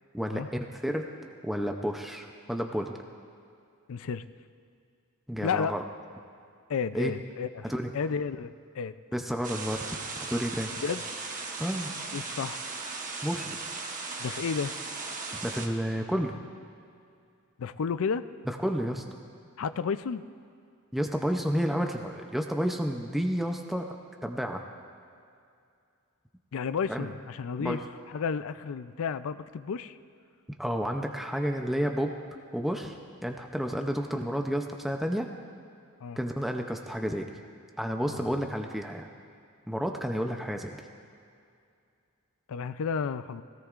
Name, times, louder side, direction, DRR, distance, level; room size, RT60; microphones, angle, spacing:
voice 1, 0.1-1.1 1.4-3.0 5.3-5.8 6.9-7.1 7.6-7.9 9.1-9.8 10.3-10.7 11.6-11.9 13.2-13.6 15.3-16.4 18.5-19.0 20.9-24.0 24.2-24.6 26.9-27.1 27.6-27.8 30.6-32.2 32.5-33.0 33.2-35.3 36.2-37.3 37.8-39.1 39.7-40.7, equal, ahead, 3 dB, 0.5 m, -30 dB
voice 2, 3.9-4.3 5.4-5.7 6.7-7.7 7.9-9.0 10.8-11.0 12.1-12.6 14.2-14.8 17.6-18.2 19.6-20.2 26.5-27.8 28.1-30.0 36.0-36.2 38.0-38.3 42.5-43.4, left 6 dB, 65° left, 13 dB, 0.4 m, -32 dB
sound 1, 9.4-15.7, right 4 dB, 35° right, 1.1 m, -37 dB
19.5 x 17.5 x 2.5 m, 2.4 s
head